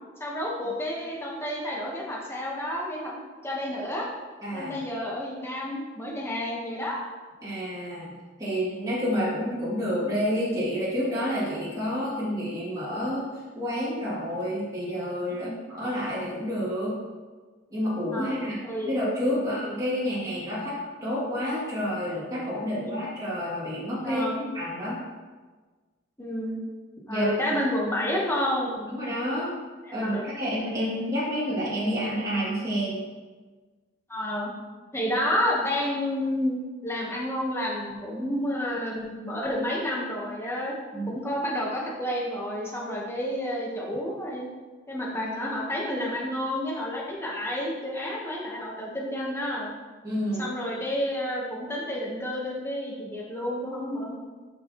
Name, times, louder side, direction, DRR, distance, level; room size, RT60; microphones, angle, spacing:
voice 1, 0.2-4.1 4.5-7.0 15.3-15.6 18.1-18.9 19.3-19.5 22.7-23.0 24.0-24.4 26.2-26.6 27.1-28.9 29.9-30.3 34.1-34.5 34.9-44.5 44.9-49.7 50.4-54.1, left 1 dB, 15° left, -3 dB, 1.3 m, -30 dB
voice 2, 4.4-4.8 7.4-8.1 8.4-13.3 13.5-17.0 17.7-18.6 18.9-24.3 24.5-25.0 27.1-27.5 28.9-29.5 29.9-33.1 40.9-41.1 50.0-50.5, equal, 20° right, -9 dB, 2.7 m, -29 dB
12.0 x 6.3 x 3.1 m, 1.4 s
head